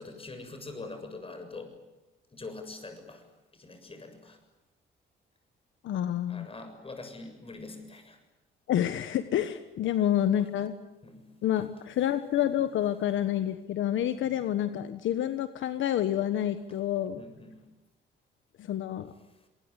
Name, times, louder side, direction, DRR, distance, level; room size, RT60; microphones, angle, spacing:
voice 1, 0.0-1.8 2.3-3.3 3.5-4.4 6.3-8.2 9.9-10.0 11.0-11.3 11.6-11.7 11.9-12.1 14.2-14.4 17.2-17.6 19.3-19.5, left 3 dB, 30° left, 7 dB, 7.2 m, -44 dB
voice 2, 5.8-6.5 8.7-10.7 11.4-17.2 18.6-19.1, left 11 dB, 75° left, 10 dB, 1.4 m, -28 dB
27.0 x 20.5 x 9.7 m, 1.0 s
cardioid pair, 90°, 20 cm